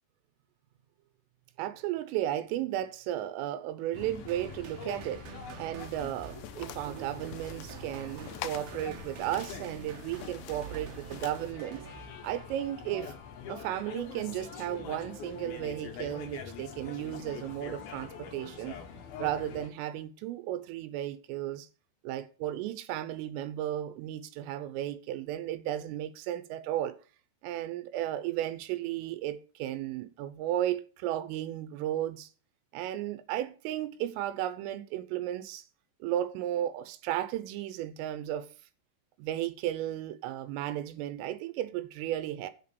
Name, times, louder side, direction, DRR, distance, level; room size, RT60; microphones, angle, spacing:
voice 1, 1.6-5.3 5.6-11.9 12.2-13.1 13.5-18.8 19.2-21.7 22.1-27.0 27.4-32.3 32.7-35.6 36.0-38.5 39.2-42.5, right 12 dB, 85° right, 3.4 m, -34 dB
sound 1, 3.9-19.7, left 6 dB, 70° left, 2.4 m, -45 dB
sound 2, 4.3-12.6, right 8 dB, 70° right, 2.5 m, -47 dB
sound 3, 5.8-11.5, left 12 dB, 85° left, 3.4 m, -46 dB
8.3 x 6.8 x 6.8 m
omnidirectional pair, 5.7 m